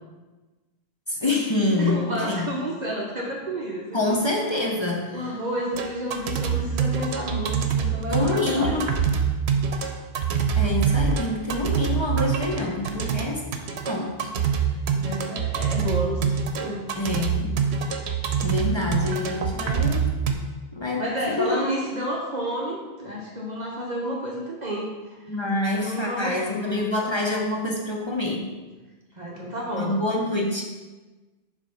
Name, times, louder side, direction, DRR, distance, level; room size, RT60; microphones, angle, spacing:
voice 1, 1.1-2.0 2.3-2.5 3.9-5.4 8.1-8.9 10.6-13.4 13.9-14.7 16.9-17.6 18.4-20.1 20.7-21.7 25.3-28.5 29.7-30.6, left 2 dB, 30° left, -2 dB, 0.7 m, -26 dB
voice 2, 1.7-4.3 5.1-8.8 14.9-16.8 21.0-24.9 25.7-26.8 29.1-29.9, right 1 dB, 45° right, -3 dB, 0.9 m, -30 dB
sound 1, 5.7-20.3, right 6 dB, 85° right, 0.9 m, -25 dB
7.3 x 3.3 x 5.5 m, 1.2 s
omnidirectional pair, 1.1 m